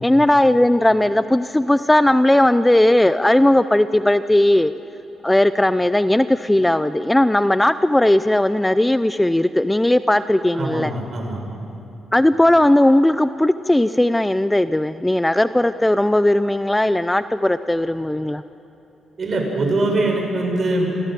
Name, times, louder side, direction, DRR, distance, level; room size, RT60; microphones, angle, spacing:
voice 1, 0.0-4.7 5.2-10.9 12.1-18.4, left 1 dB, 10° left, 13 dB, 0.5 m, -17 dB
voice 2, 10.6-11.4 19.2-20.9, right 2 dB, 45° right, 1 dB, 5.6 m, -22 dB
26.5 x 15.5 x 7.6 m, 2.9 s
cardioid pair, 80°, 0 cm